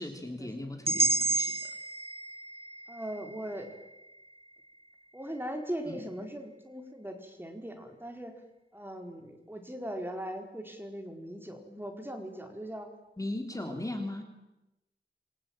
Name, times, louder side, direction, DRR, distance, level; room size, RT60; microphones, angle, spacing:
voice 1, 0.0-1.7 5.9-6.1 13.2-14.2, left 1 dB, 20° left, 4 dB, 3.6 m, -38 dB
sound 1, 0.9-4.9, right 2 dB, 30° right, 1.2 m, -32 dB
voice 2, 2.9-3.7 5.1-8.3 8.7-12.9 13.6-13.8, equal, 10° right, 4 dB, 4.6 m, -40 dB
28.0 x 23.0 x 9.1 m, 0.96 s
wide cardioid pair, 85°, 19 cm